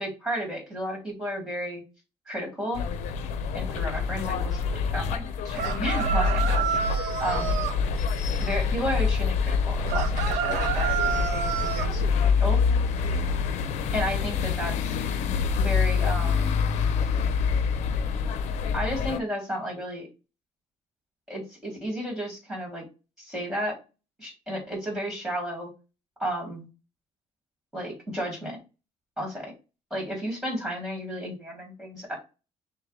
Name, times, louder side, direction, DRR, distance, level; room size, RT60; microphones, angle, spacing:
voice 1, 0.0-1.8 2.3-2.8 3.5-4.6 4.9-7.5 8.4-11.9 12.2-12.6 13.9-15.0 15.6-16.5 18.7-20.1 21.3-22.9 23.2-23.8 24.2-25.7 26.2-26.7 27.7-28.6 29.2-29.5 29.9-32.2, equal, 5° right, 0 dB, 2.0 m, -33 dB
sound 1, 2.7-19.2, left 5 dB, 80° left, 0.6 m, -26 dB
sound 2, 5.5-7.8 9.9-11.9, right 8 dB, 90° right, 0.6 m, -29 dB
6.3 x 2.2 x 3.3 m, 0.29 s
cardioid pair, 170°, 12 cm